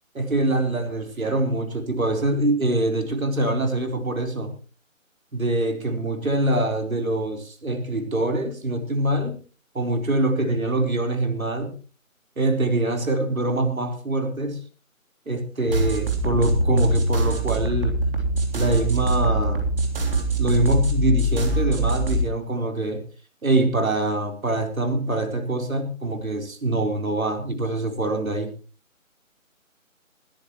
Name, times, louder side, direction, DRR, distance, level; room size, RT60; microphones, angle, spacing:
voice 1, 0.1-4.5 5.3-9.3 9.7-11.7 12.4-14.6 15.3-18.2 18.5-19.6 20.4-23.0 23.4-28.5, right 2 dB, 80° right, 5 dB, 4.2 m, -24 dB
sound 1, 15.7-22.2, right 1 dB, 40° right, 3.5 m, -23 dB
21.0 x 13.5 x 3.1 m, 0.35 s
figure-of-eight pair, 170°, 41 cm